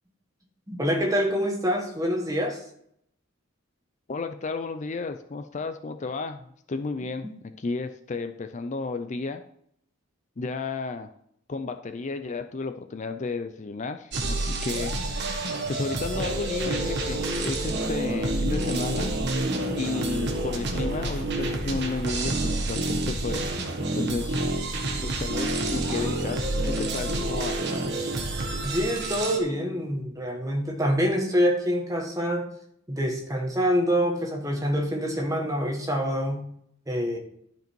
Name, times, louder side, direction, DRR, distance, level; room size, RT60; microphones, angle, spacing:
voice 1, 0.7-2.6 7.2-7.3 28.6-32.5 32.9-36.4 36.9-37.2, equal, 15° right, 2 dB, 1.4 m, -26 dB
voice 2, 4.1-7.3 7.6-9.4 10.4-11.1 11.5-14.9 15.3-15.4 15.7-19.1 19.7-23.6 23.9-24.4 25.0-27.7, left 3 dB, 35° left, 8 dB, 0.4 m, -33 dB
sound 1, 14.1-29.4, right 2 dB, 55° right, 1.4 m, -28 dB
12.0 x 5.2 x 4.5 m, 0.70 s
head